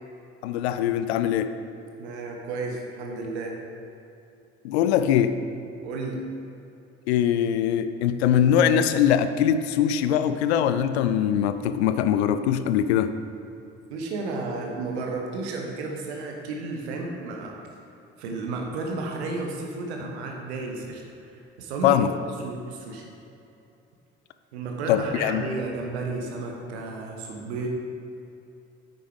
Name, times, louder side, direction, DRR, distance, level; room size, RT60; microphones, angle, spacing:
voice 1, 0.4-1.5 4.6-5.4 7.1-13.1 21.8-22.1 24.9-25.4, left 9 dB, 70° left, 11 dB, 0.5 m, -22 dB
voice 2, 2.0-3.6 5.8-6.2 13.9-17.5 18.2-22.1 22.4-23.1 24.5-27.7, right 3 dB, 75° right, 1 dB, 1.1 m, -32 dB
9.4 x 6.4 x 3.5 m, 2.8 s
figure-of-eight pair, 45°, 33 cm